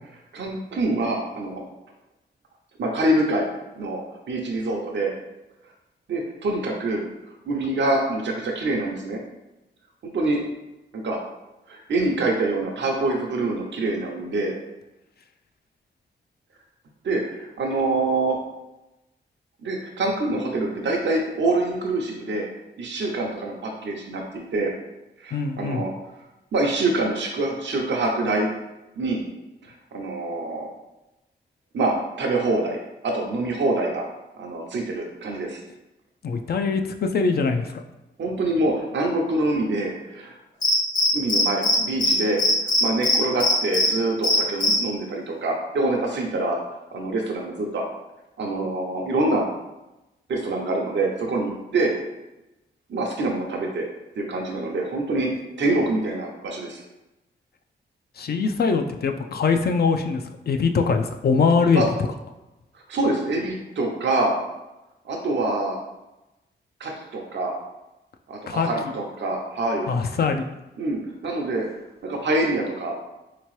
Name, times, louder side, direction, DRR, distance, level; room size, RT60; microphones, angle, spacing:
voice 1, 0.3-1.6 2.8-3.5 3.8-4.0 4.3-5.1 6.1-7.1 7.5-9.2 10.0-10.4 10.9-11.2 11.7-14.5 17.0-18.4 19.6-22.5 22.8-24.7 25.2-25.9 26.5-28.5 29.0-29.2 29.6-30.7 31.7-32.8 33.0-34.1 34.4-35.6 38.2-40.4 41.1-46.6 46.9-47.8 48.4-49.5 50.3-51.9 52.9-53.9 54.2-55.3 55.6-56.8 61.7-61.9 62.7-64.4 65.0-65.8 66.8-67.5 68.3-69.9 70.8-71.6 72.0-73.0, right 2 dB, 65° right, 0 dB, 0.6 m, -25 dB
voice 2, 25.3-25.8 36.2-37.7 58.2-61.8 68.5-68.7 69.9-70.4, left 5 dB, 55° left, 6 dB, 0.4 m, -22 dB
Cricket, 40.6-41.8 42.0-42.1 42.4-43.9 44.2-44.7, left 2 dB, 85° left, 1.2 m, -19 dB
3.5 x 2.9 x 3.1 m, 0.99 s
cardioid pair, 55°, 20 cm